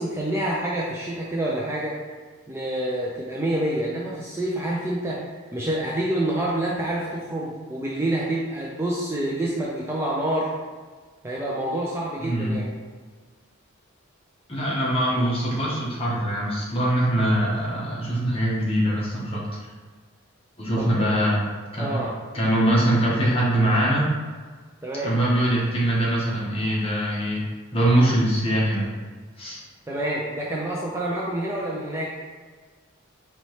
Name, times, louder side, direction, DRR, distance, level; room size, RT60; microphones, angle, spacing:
voice 1, 0.0-2.0 2.5-10.5 11.2-12.7 20.8-21.1 21.8-22.1 24.8-25.1 29.9-32.1, right 1 dB, 15° right, -4 dB, 0.4 m, -27 dB
voice 2, 12.2-12.6 14.5-19.4 20.6-21.4 21.7-22.0 22.3-24.1 25.0-27.4 27.7-28.9 29.4-29.6, right 1 dB, 25° left, -5 dB, 1.0 m, -22 dB
4.2 x 2.9 x 3.1 m, 1.5 s
head